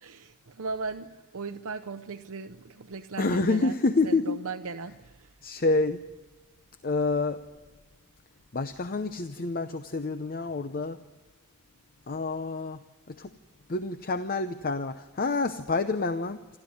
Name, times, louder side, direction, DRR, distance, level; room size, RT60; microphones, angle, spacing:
voice 1, 0.0-3.7 4.0-5.3, right 4 dB, 70° right, 8 dB, 0.7 m, -37 dB
voice 2, 3.2-4.4 5.4-6.0 6.8-7.4 8.5-11.0 12.1-12.8 13.1-13.3 13.7-16.4, left 3 dB, 40° left, 10 dB, 0.7 m, -28 dB
28.0 x 12.5 x 9.6 m, 1.2 s
head